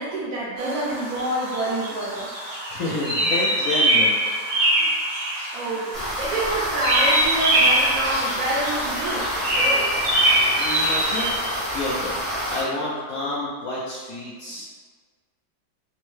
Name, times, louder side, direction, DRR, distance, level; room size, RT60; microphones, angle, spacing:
voice 1, 0.0-2.3 5.5-5.9 6.2-9.3 9.5-9.9, right 1 dB, 65° right, -6 dB, 0.9 m, -27 dB
sound 1, 0.6-11.3, right 1 dB, 85° right, 0.5 m, -23 dB
voice 2, 2.7-4.2 4.8-4.9 10.5-12.2 12.5-14.6, left 2 dB, 70° left, -6 dB, 0.8 m, -29 dB
sound 2, 5.9-12.6, equal, 30° right, 0.6 m, -28 dB
3.5 x 2.1 x 3.1 m, 1.5 s
omnidirectional pair, 2.0 m